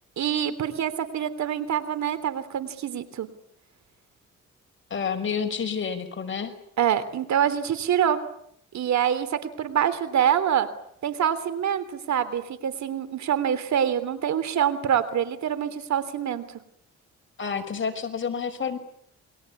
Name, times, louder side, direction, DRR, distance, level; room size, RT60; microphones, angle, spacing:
voice 1, 0.2-3.3 6.8-8.2 8.7-10.7 11.0-16.6, right 9 dB, 65° right, 14 dB, 3.4 m, -25 dB
voice 2, 4.9-6.5 17.4-18.8, left 6 dB, 40° left, 5 dB, 5.6 m, -29 dB
29.0 x 23.0 x 8.5 m, 0.70 s
cardioid pair, 90°, 30 cm